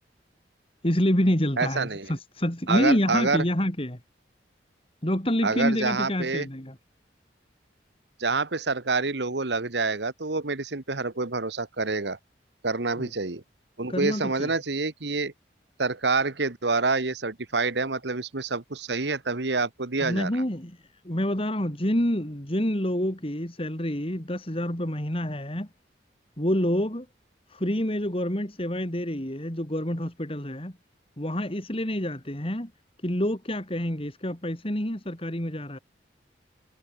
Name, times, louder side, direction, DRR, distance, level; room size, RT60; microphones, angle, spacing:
voice 1, 0.8-4.0 5.0-6.7 13.0-13.1 13.9-14.5 20.0-20.8 21.0-25.7 26.4-27.1 27.5-30.7 31.2-32.7 33.0-35.8, equal, 30° left, 3.5 m, -27 dB
voice 2, 1.6-2.1 2.7-3.4 5.4-6.5 8.2-12.2 12.6-13.4 13.8-15.3 15.8-20.3, right 3 dB, 70° right, 1.5 m, -27 dB
head